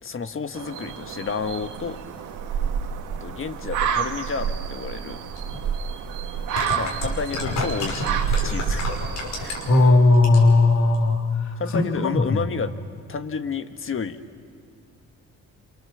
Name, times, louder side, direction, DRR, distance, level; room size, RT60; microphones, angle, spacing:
voice 1, 0.0-2.0 3.2-5.2 6.7-8.9 9.4-9.5 11.6-12.7 13.1-14.2, left 5 dB, 45° left, 8 dB, 1.6 m, -31 dB
sound 1, 0.5-9.9, right 7 dB, 90° right, 1.9 m, -29 dB
sound 2, 5.4-5.5 6.3-9.8 10.1-10.6 10.9-11.0, left 3 dB, 85° left, 6.0 m, -30 dB
voice 2, 9.6-12.4, left 2 dB, 70° left, 0 dB, 3.2 m, -18 dB
28.0 x 28.0 x 7.3 m, 2.2 s
cardioid pair, 90°, 30 cm